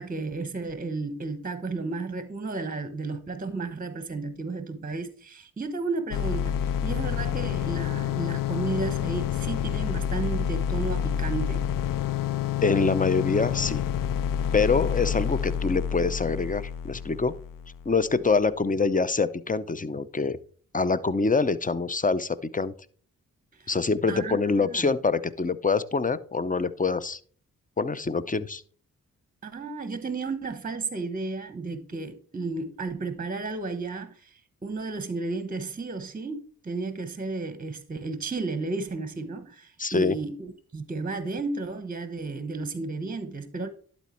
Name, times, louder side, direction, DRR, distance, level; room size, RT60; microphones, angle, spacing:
voice 1, 0.0-11.6 23.5-23.7 24.1-24.9 29.4-43.7, right 3 dB, 25° right, 1.0 m, -33 dB
sound 1, 6.1-18.0, left 9 dB, 70° left, 0.5 m, -28 dB
voice 2, 12.6-13.8 14.5-17.3 17.8-20.4 20.7-22.7 23.7-27.2 27.8-28.6 39.8-40.2, left 4 dB, 25° left, 0.7 m, -25 dB
11.5 x 4.4 x 4.4 m
supercardioid pair, 40°, 34 cm